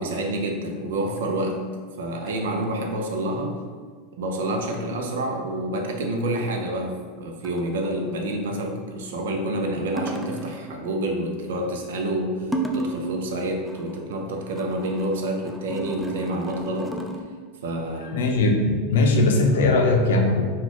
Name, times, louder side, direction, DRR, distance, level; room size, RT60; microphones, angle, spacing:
voice 1, 0.0-1.6 2.0-3.6 4.1-16.9 17.6-18.3, right 1 dB, 85° right, 2 dB, 0.5 m, -28 dB
sound 1, 1.0-1.2 2.3-2.6 4.7-5.2 7.4-8.0 10.0-10.8 12.5-13.2 13.5-17.2, right 2 dB, ahead, 0.3 m, -33 dB
voice 2, 18.1-20.4, left 2 dB, 85° left, 3 dB, 0.5 m, -19 dB
4.1 x 2.4 x 3.0 m, 1.5 s
supercardioid pair, 125°, 0 cm